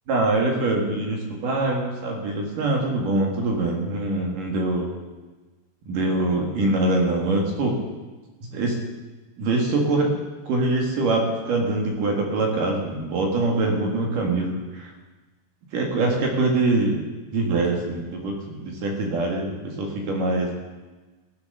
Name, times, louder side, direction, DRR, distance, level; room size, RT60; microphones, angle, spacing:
voice 1, 0.1-4.9 5.9-7.8 8.5-8.8 9.4-10.1 10.5-14.9 15.7-17.0 17.3-20.5, right 2 dB, 55° right, 1 dB, 3.1 m, -24 dB
15.0 x 11.5 x 6.7 m, 1.2 s
omnidirectional pair, 4.9 m